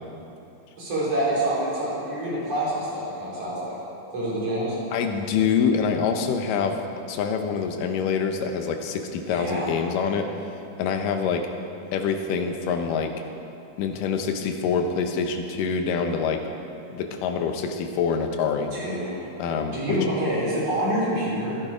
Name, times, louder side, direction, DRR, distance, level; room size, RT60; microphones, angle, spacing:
voice 1, 0.8-3.7 4.1-4.8 9.3-9.7 18.7-19.2 19.7-21.6, right 1 dB, 50° right, -7 dB, 4.7 m, -27 dB
voice 2, 4.9-6.8 7.1-10.3 10.8-11.5 11.9-13.1 13.8-16.4 16.9-18.7 19.4-20.1, left 6 dB, 80° left, 5 dB, 2.5 m, -25 dB
13.5 x 11.0 x 5.0 m, 2.8 s
omnidirectional pair, 3.8 m